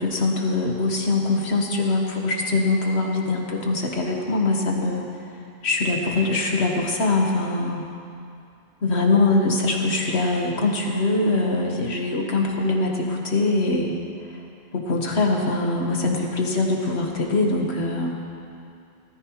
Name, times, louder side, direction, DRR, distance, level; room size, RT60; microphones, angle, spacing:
voice 1, 0.0-5.0 5.6-7.8 8.8-13.9 14.7-18.1, left 2 dB, 75° left, 1 dB, 1.5 m, -23 dB
18.0 x 14.0 x 3.0 m, 2.5 s
omnidirectional pair, 1.1 m